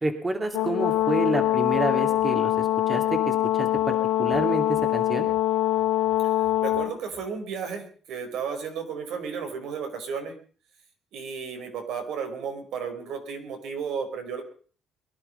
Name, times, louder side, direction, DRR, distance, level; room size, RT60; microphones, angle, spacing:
voice 1, 0.0-5.3, right 2 dB, 20° right, 5 dB, 2.6 m, -29 dB
Brass instrument, 0.5-6.9, left 14 dB, 85° left, 1.9 m, -24 dB
voice 2, 6.2-10.3 11.1-14.4, right 6 dB, 75° right, 4 dB, 4.9 m, -33 dB
22.5 x 11.5 x 5.5 m, 0.43 s
cardioid pair, 100°, 0 cm